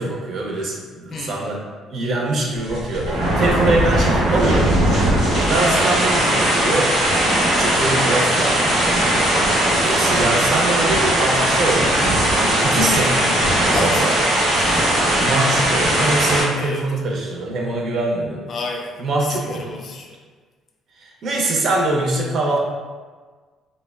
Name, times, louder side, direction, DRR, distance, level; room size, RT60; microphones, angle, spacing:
voice 1, 0.0-1.6 1.9-4.7 5.5-6.9 7.6-8.8 9.8-12.0 12.4-13.4 13.7-14.2 15.2-18.5 19.0-19.8 21.0-22.6, right 2 dB, 55° right, -1 dB, 0.4 m, -23 dB
voice 2, 1.1-1.6 5.2-5.6 13.7-14.9 15.9-16.9 18.5-20.2, left 3 dB, 45° left, 1 dB, 0.4 m, -32 dB
sound 1, 2.6-16.4, right 1 dB, 80° right, 1.0 m, -18 dB
2.8 x 2.0 x 2.3 m, 1.5 s
cardioid pair, 115°, 0 cm